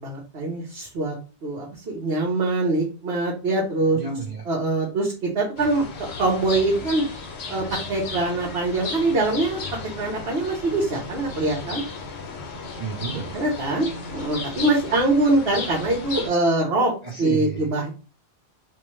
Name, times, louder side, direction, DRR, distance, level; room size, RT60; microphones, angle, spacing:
voice 1, 0.0-1.1 1.4-4.0 4.4-7.1 7.5-9.6 10.0-11.8 13.3-16.9 17.2-17.9, right 2 dB, 70° right, -3 dB, 1.2 m, -23 dB
voice 2, 3.9-4.4 12.8-13.4 17.0-17.7, right 4 dB, 40° right, -2 dB, 0.8 m, -31 dB
sound 1, 5.6-16.3, left 4 dB, 90° left, 1.1 m, -35 dB
4.6 x 2.3 x 3.1 m, 0.35 s
omnidirectional pair, 1.1 m